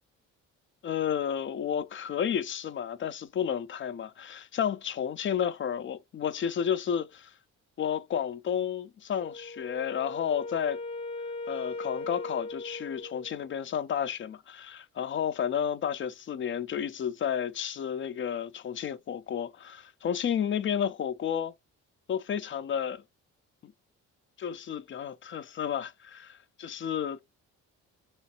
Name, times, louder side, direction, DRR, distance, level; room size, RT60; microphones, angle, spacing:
voice 1, 0.8-7.3 7.8-10.8 11.5-21.5 22.1-23.0 23.6-23.7 24.4-27.2, left 8 dB, 40° left, 0.5 m, -31 dB
Wind instrument woodwind instrument, 9.2-13.5, left 2 dB, 60° left, 1.0 m, -39 dB
3.2 x 3.1 x 2.8 m
cardioid pair, 90°, 30 cm